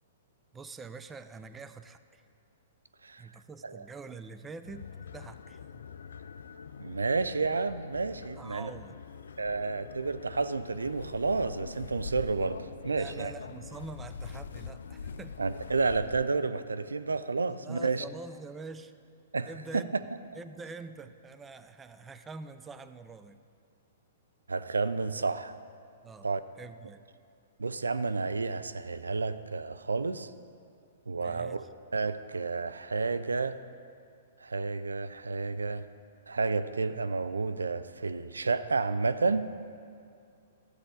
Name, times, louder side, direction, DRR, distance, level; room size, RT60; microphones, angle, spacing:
voice 1, 0.5-2.2 3.2-5.8 8.4-9.0 12.9-15.4 17.5-18.9 19.5-19.9 20.4-23.4 26.0-26.3 26.6-27.0 31.1-31.7, right 4 dB, 15° right, 11 dB, 0.4 m, -45 dB
sound 1, 4.6-16.3, left 6 dB, 75° left, 0.3 m, -44 dB
voice 2, 6.8-8.7 9.4-13.3 15.4-18.0 19.3-19.8 24.5-25.5 26.2-26.4 27.6-30.3 31.1-31.6 31.9-33.6 34.4-35.8 36.3-39.5, right 4 dB, 85° right, 13 dB, 0.3 m, -30 dB
12.0 x 7.9 x 3.8 m, 2.4 s
hypercardioid pair, 115°, 0 cm